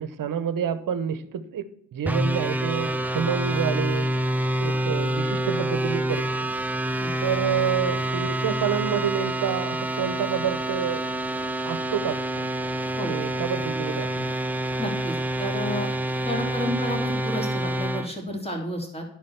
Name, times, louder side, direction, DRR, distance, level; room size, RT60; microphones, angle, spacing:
voice 1, 0.0-4.1 4.6-6.5 7.2-11.0 11.6-12.5 13.0-14.3, right 8 dB, 55° right, 13 dB, 1.1 m, -28 dB
sound 1, 2.1-18.1, right 1 dB, 5° right, 0.4 m, -27 dB
voice 2, 14.8-15.9 16.2-19.0, equal, 15° left, 1 dB, 3.2 m, -31 dB
10.5 x 5.2 x 7.1 m, 0.68 s
cardioid pair, 105°, 40 cm